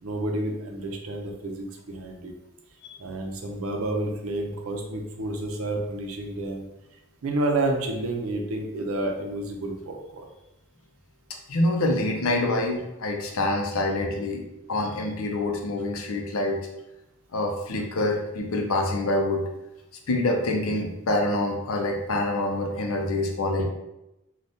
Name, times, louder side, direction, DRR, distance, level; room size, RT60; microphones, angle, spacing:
voice 1, 0.0-2.3 3.0-6.6 7.2-10.3, right 2 dB, 80° right, 2 dB, 0.5 m, -30 dB
voice 2, 11.5-14.4 14.7-16.6 17.3-19.4 20.1-23.6, left 2 dB, 80° left, 2 dB, 0.5 m, -26 dB
3.3 x 2.2 x 2.6 m, 0.92 s
head